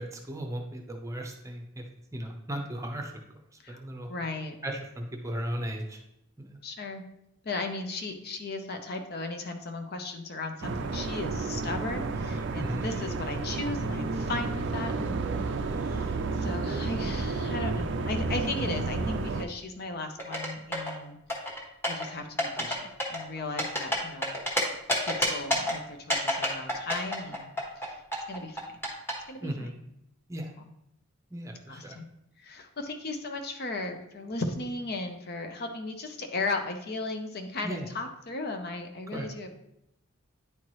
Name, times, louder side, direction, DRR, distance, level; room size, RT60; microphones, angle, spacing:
voice 1, 0.0-1.8 2.1-3.1 3.7-4.1 4.6-6.0 6.4-6.6 12.6-12.9 29.4-29.7 30.3-30.5 31.3-32.0 37.6-37.9 39.1-39.3, right 1 dB, 15° right, 3 dB, 0.7 m, -36 dB
voice 2, 4.1-4.6 6.6-7.0 7.4-21.2 21.9-24.3 25.0-27.5 27.8-28.0 28.3-28.6 29.3-29.7 31.7-32.1 32.4-39.5, left 2 dB, 45° left, 5 dB, 0.7 m, -36 dB
sound 1, 10.6-19.4, right 3 dB, 55° right, 0.4 m, -31 dB
sound 2, 20.2-20.9 21.3-22.1 22.4-22.8 23.0-24.6 24.9-25.7 26.1-27.9 28.1-29.1, equal, 10° left, 1.1 m, -28 dB
9.6 x 4.5 x 3.1 m, 0.81 s
head